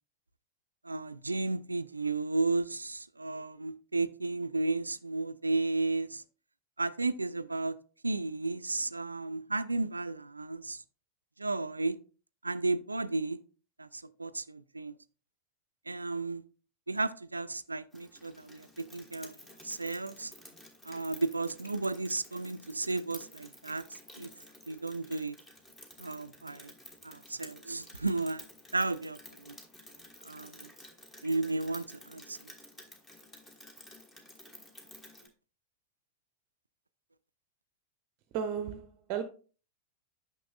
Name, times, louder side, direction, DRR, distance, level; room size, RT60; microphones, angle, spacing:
voice 1, 0.8-6.2 6.8-7.7 8.0-10.8 11.4-12.0 12.4-13.4 13.8-14.9 15.9-16.4 16.9-19.3 19.6-20.3 20.9-24.3 24.7-25.3 26.0-26.7 27.0-28.4 28.7-29.5 30.2-30.7 31.2-32.4, right 3 dB, 80° right, 0.3 m, -33 dB
Rain, 17.9-35.3, left 1 dB, 15° left, 1.3 m, -53 dB
voice 2, 38.3-39.2, right 8 dB, 40° right, 0.6 m, -34 dB
9.1 x 5.8 x 2.3 m
figure-of-eight pair, 90°, 0 cm